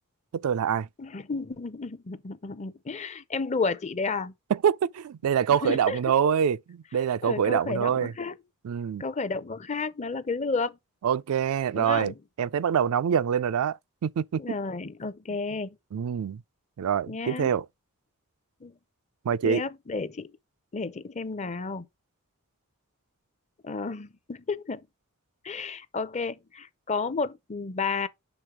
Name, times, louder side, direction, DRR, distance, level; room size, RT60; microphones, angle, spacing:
voice 1, 0.3-0.9 4.5-8.1 8.6-9.0 11.0-12.1 12.4-14.4 15.9-16.4 16.8-17.6 19.3-19.6, right 8 dB, 80° right, 0.4 m, -25 dB
voice 2, 1.0-4.3 5.6-6.0 7.2-8.4 9.0-10.8 11.7-12.2 14.4-15.8 17.1-17.5 18.6-18.8 19.4-20.3 20.7-21.9 23.6-24.9 25.4-28.1, left 4 dB, 30° left, 0.5 m, -32 dB
6.1 x 3.6 x 4.9 m
head